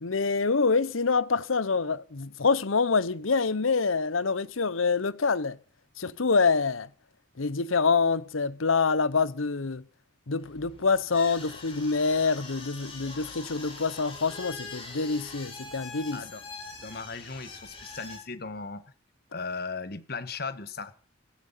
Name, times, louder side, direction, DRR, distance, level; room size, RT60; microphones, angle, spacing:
voice 1, 0.0-5.6 6.0-6.9 7.4-9.8 10.3-16.2, left 4 dB, 90° left, 0.9 m, -26 dB
sound 1, 10.4-18.2, left 3 dB, 30° left, 6.5 m, -43 dB
voice 2, 16.1-16.4 16.8-18.9 19.3-20.9, left 4 dB, 50° left, 1.5 m, -37 dB
17.0 x 14.0 x 5.7 m
head